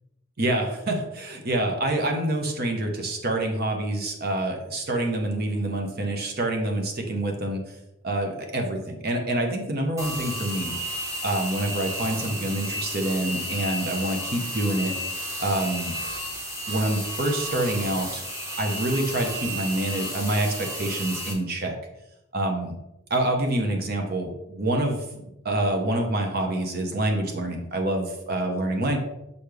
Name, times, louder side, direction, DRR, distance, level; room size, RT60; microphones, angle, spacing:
voice 1, 0.4-7.6 8.0-10.8 11.2-14.9 15.4-15.9 16.7-18.2 18.6-21.7 22.3-22.8 23.1-25.0 25.4-29.0, right 1 dB, 50° right, 3 dB, 1.1 m, -26 dB
sound 1, 10.0-21.3, equal, 15° right, 1.1 m, -33 dB
7.0 x 4.2 x 3.4 m, 0.89 s
head